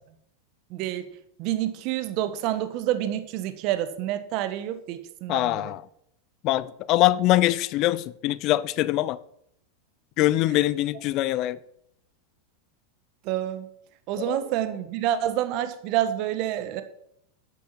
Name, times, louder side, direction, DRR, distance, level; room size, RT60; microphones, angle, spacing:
voice 1, 0.7-1.0 1.4-5.7 13.2-13.7 14.1-16.8, right 12 dB, 55° right, 1.3 m, -28 dB
voice 2, 5.3-5.8 6.4-9.2 10.2-11.6 14.2-14.4, left 16 dB, 50° left, 0.6 m, -23 dB
10.5 x 8.3 x 5.9 m
hypercardioid pair, 110°, 0 cm